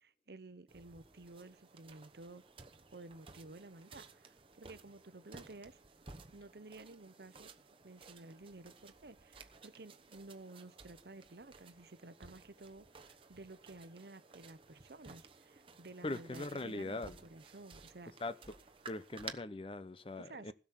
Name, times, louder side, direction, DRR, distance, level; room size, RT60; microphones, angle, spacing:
voice 1, 0.0-2.4 2.9-5.8 6.3-7.5 7.8-18.1 20.2-20.5, right 2 dB, 65° right, 0.9 m, -53 dB
sound 1, 0.7-19.3, right 4 dB, 30° right, 1.0 m, -56 dB
voice 2, 16.0-17.2 18.2-18.6 18.9-20.5, left 2 dB, 30° left, 0.7 m, -41 dB
16.5 x 6.2 x 6.2 m
head